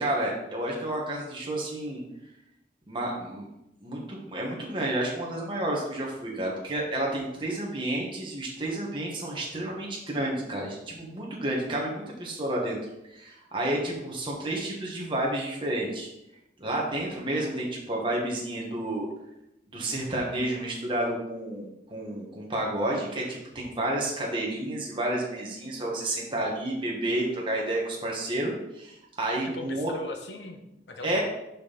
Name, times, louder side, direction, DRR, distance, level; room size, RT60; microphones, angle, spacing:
voice 1, 0.0-2.0 2.9-3.5 3.8-12.8 13.1-16.1 16.6-19.1 19.7-29.9 31.0-31.2, right 1 dB, 30° right, -3 dB, 1.6 m, -30 dB
voice 2, 29.4-31.2, left 2 dB, 80° left, 4 dB, 1.1 m, -39 dB
6.5 x 5.5 x 4.2 m, 0.88 s
head